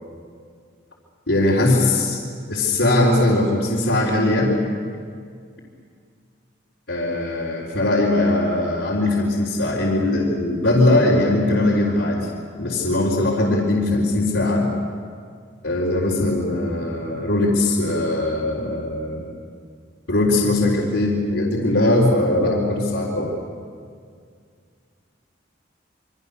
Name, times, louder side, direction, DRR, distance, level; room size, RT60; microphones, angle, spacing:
voice 1, 1.3-2.2 2.5-4.5 6.9-12.2 12.6-14.7 15.6-19.3 20.1-23.3, left 2 dB, 75° left, -6 dB, 4.0 m, -20 dB
28.0 x 25.0 x 6.8 m, 2.1 s
head